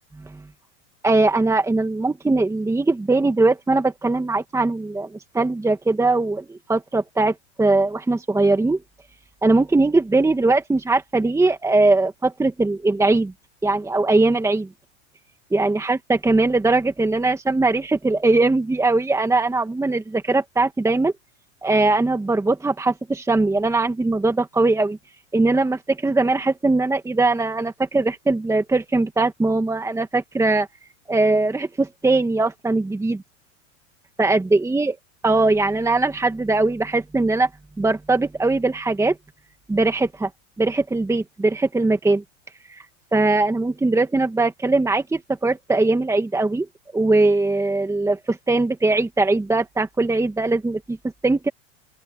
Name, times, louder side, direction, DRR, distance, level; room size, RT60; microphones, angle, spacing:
voice 1, 1.0-8.8 9.4-13.3 13.6-14.7 15.5-21.1 21.6-25.0 25.3-30.7 31.1-33.2 34.2-34.9 35.2-37.5 37.8-39.2 39.7-40.3 40.6-42.2 43.1-46.7 46.9-51.0 51.2-51.5, right 2 dB, 10° right, 1.9 m, -20 dB
open air
supercardioid pair, 120°, 37 cm